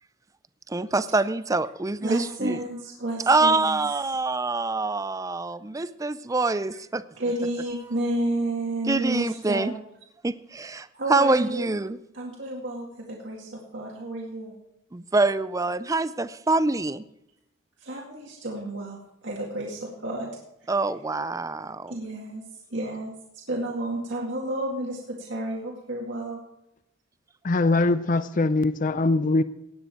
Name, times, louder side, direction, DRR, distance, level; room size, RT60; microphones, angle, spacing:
voice 1, 0.7-2.6 3.3-7.0 8.9-9.7 10.2-12.0 14.9-17.0 20.7-21.9, right 3 dB, 15° right, 0.4 m, -25 dB
voice 2, 2.0-3.8 7.2-9.7 10.9-11.7 12.1-14.5 17.8-20.3 20.6-20.7 21.9-22.4 22.7-23.1 23.5-26.4, right 1 dB, 60° right, 2.1 m, -31 dB
voice 3, 27.4-29.4, left 2 dB, 40° left, 0.5 m, -22 dB
17.0 x 9.7 x 4.6 m
head